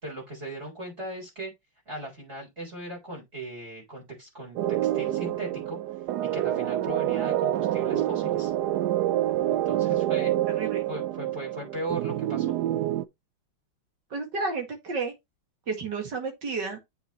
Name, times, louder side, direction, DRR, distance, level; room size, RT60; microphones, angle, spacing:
voice 1, 0.0-1.5 1.9-5.8 6.2-8.5 9.5-10.3 10.6-12.6, right 1 dB, 30° right, 4.3 m, -38 dB
sound 1, 4.6-13.1, right 13 dB, 75° right, 0.9 m, -27 dB
voice 2, 10.5-10.8 14.1-15.1 15.7-16.8, right 4 dB, 55° right, 2.6 m, -31 dB
8.2 x 5.9 x 3.0 m
omnidirectional pair, 2.3 m